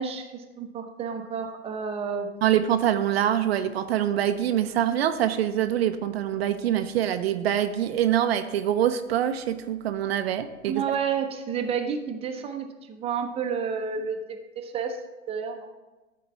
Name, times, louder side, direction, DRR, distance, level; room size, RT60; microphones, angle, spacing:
voice 1, 0.0-2.3 10.7-15.0 15.3-15.7, right 6 dB, 15° right, 5 dB, 0.8 m, -30 dB
voice 2, 2.4-10.8, right 10 dB, 50° right, 9 dB, 0.6 m, -25 dB
11.5 x 4.6 x 4.7 m, 1.2 s
hypercardioid pair, 115°, 39 cm